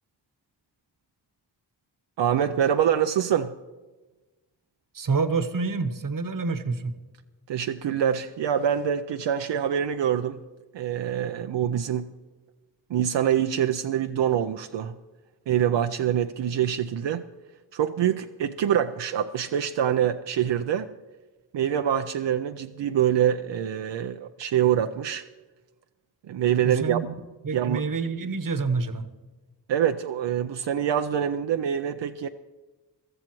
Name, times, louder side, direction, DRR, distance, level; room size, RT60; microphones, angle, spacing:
voice 1, 2.2-3.5 7.5-10.4 10.7-12.1 12.9-15.0 15.5-17.2 17.7-20.9 21.5-25.2 26.3-27.0 27.5-27.9 29.7-32.3, right 9 dB, 80° right, 7 dB, 0.5 m, -25 dB
voice 2, 4.9-6.9 26.6-27.1 27.4-29.1, right 4 dB, 50° right, 10 dB, 1.0 m, -27 dB
21.5 x 13.5 x 3.0 m, 1.2 s
cardioid pair, 45°, 43 cm